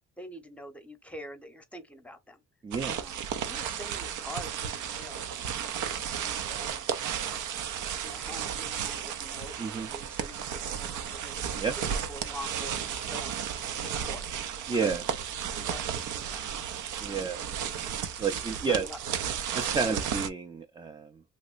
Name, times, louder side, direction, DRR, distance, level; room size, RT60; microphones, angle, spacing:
voice 1, 0.2-2.4 2.9-3.2 3.4-6.9 7.2-9.5 9.9-11.3 11.8-13.4 13.7-14.2 14.7-15.2 15.5-17.4 17.7-17.8 18.5-19.0 19.8-20.0, left 1 dB, 5° left, 0.8 m, -46 dB
voice 2, 2.6-3.0 9.6-9.9 11.6-11.8 14.7-15.1 17.0-17.4 18.2-18.9 19.5-21.2, right 5 dB, 15° right, 0.4 m, -30 dB
sound 1, 2.7-20.3, right 8 dB, 80° right, 0.6 m, -34 dB
3.1 x 2.9 x 2.4 m
cardioid pair, 90°, 30 cm